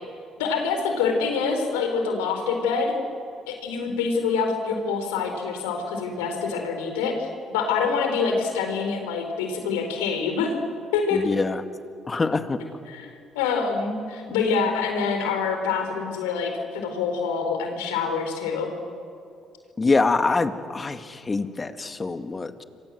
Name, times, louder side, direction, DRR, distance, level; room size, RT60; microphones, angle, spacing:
voice 1, 0.4-2.9 3.5-7.3 7.5-10.5 10.9-11.2 12.9-18.7, left 5 dB, 85° left, 4 dB, 4.5 m, -26 dB
voice 2, 11.1-11.6 12.1-12.6 19.8-22.6, left 3 dB, 30° left, 9 dB, 2.0 m, -24 dB
29.0 x 23.5 x 7.9 m, 2.4 s
hypercardioid pair, 60°, 0 cm